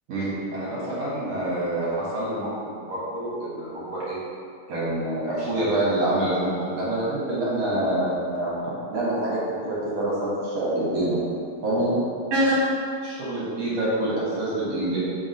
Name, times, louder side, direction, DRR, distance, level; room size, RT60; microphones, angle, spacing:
voice 1, 0.1-4.2 4.7-8.5 8.9-11.2 11.6-12.0 12.3-12.6 13.0-15.0, right 1 dB, 55° right, -8 dB, 2.3 m, -26 dB
5.7 x 3.6 x 5.4 m, 2.2 s
omnidirectional pair, 3.8 m